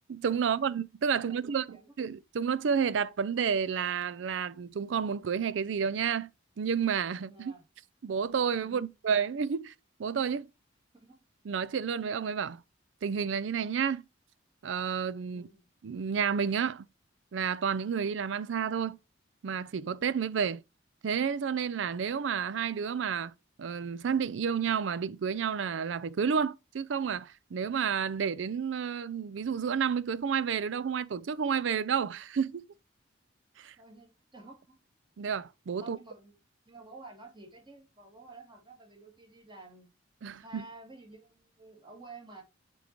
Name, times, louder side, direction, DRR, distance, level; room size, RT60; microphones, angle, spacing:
voice 1, 0.1-6.3 6.6-7.5 8.0-9.7 10.0-10.5 11.4-12.6 13.0-14.0 14.6-15.5 15.8-16.9 17.3-19.0 19.4-20.6 21.0-23.3 23.6-32.6 33.6-33.7 35.2-36.0 40.2-40.7, right 7 dB, 70° right, 0.4 m, -30 dB
voice 2, 1.3-1.9 7.3-7.7 8.6-8.8 10.9-11.2 15.3-15.6 33.8-34.8 35.8-36.4 36.7-39.9 40.2-42.4, right 3 dB, 25° right, 1.8 m, -51 dB
8.3 x 3.9 x 3.0 m
head